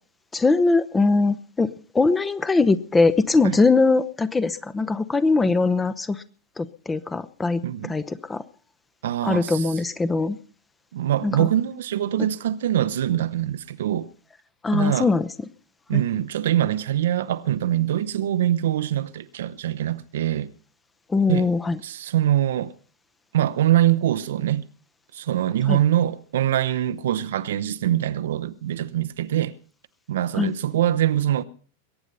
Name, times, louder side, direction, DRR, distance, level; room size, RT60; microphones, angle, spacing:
voice 1, 0.3-1.7 1.9-6.2 6.6-7.6 7.9-8.0 8.3-8.4 9.2-10.4 11.2-11.5 14.6-15.2 15.9-16.0 21.1-21.8 25.7-25.8 30.4-30.5, left 3 dB, 15° left, 0.8 m, -21 dB
voice 2, 7.6-8.0 9.0-9.8 10.9-14.1 14.7-15.1 15.9-20.5 21.3-21.5 21.8-22.7 23.3-24.7 25.1-29.5 30.1-31.4, right 12 dB, 60° right, 0.7 m, -23 dB
22.0 x 9.3 x 5.5 m
figure-of-eight pair, 90°, 0 cm